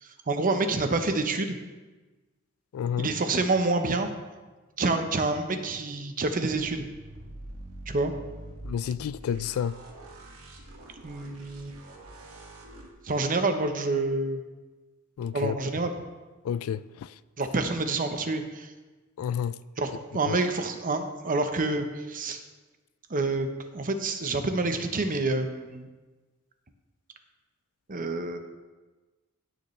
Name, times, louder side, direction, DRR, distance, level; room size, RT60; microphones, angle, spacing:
voice 1, 0.0-1.6 3.0-4.1 4.8-6.8 7.9-8.2 11.0-11.8 13.0-14.4 15.3-15.9 17.4-18.7 19.8-22.4 23.1-23.5 23.7-25.9 27.9-28.4, right 3 dB, 40° right, 0.8 m, -28 dB
voice 2, 2.7-3.1 8.6-9.8 15.2-15.5 16.5-16.8 19.2-19.5 20.3-20.4, left 8 dB, 75° left, 0.3 m, -29 dB
sound 1, 6.5-12.9, right 1 dB, 85° right, 1.7 m, -45 dB
16.5 x 6.7 x 3.2 m
head